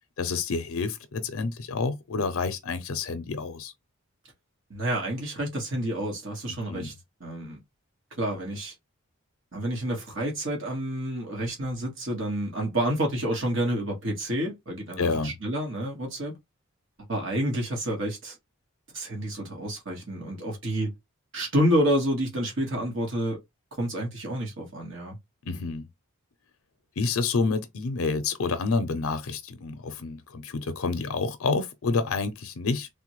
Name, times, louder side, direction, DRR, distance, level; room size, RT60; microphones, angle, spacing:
voice 1, 0.2-3.7 6.7-6.9 15.0-15.3 25.4-25.9 27.0-32.9, left 4 dB, 80° left, 0.5 m, -28 dB
voice 2, 4.7-6.9 7.2-7.6 8.2-8.7 9.5-16.3 17.1-18.4 18.9-20.9 21.3-23.4 23.8-25.2, right 1 dB, 60° right, 1.4 m, -29 dB
3.4 x 2.2 x 2.9 m
head